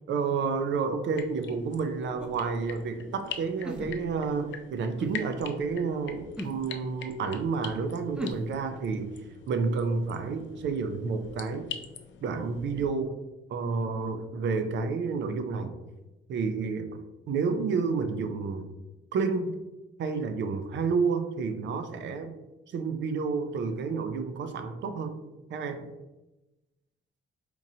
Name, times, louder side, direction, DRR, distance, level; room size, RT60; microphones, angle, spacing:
voice 1, 0.1-9.1 9.5-11.7 12.2-13.1 13.5-15.7 16.3-17.0 17.3-18.7 19.1-19.5 20.0-22.3 22.7-25.2 25.5-25.9, right 5 dB, 65° right, 8 dB, 0.5 m, -30 dB
sound 1, 1.1-12.8, left 7 dB, 70° left, 0.4 m, -44 dB
sound 2, 2.2-2.4 3.6-4.3 5.0-5.2 6.4-6.6 8.1-8.5, equal, 5° right, 0.3 m, -36 dB
4.4 x 2.6 x 2.7 m, 1.0 s
cardioid pair, 105°, 20 cm